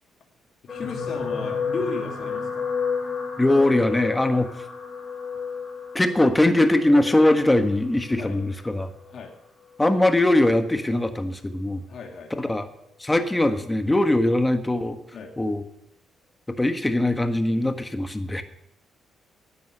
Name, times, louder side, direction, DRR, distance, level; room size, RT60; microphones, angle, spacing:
voice 1, 0.6-2.7 8.2-8.4 9.1-9.3 11.9-12.3 15.1-15.3, left 4 dB, 55° left, 1 dB, 2.4 m, -34 dB
sound 1, 0.7-9.1 9.9-10.1 10.4-10.5, left 5 dB, 35° left, 4.8 m, -32 dB
voice 2, 3.4-4.5 5.9-8.9 9.8-11.8 12.3-12.7 13.0-15.0 15.4-15.6 16.6-18.4, left 1 dB, 10° left, 8 dB, 1.4 m, -21 dB
12.5 x 9.3 x 6.7 m, 0.79 s
cardioid pair, 90°, 0 cm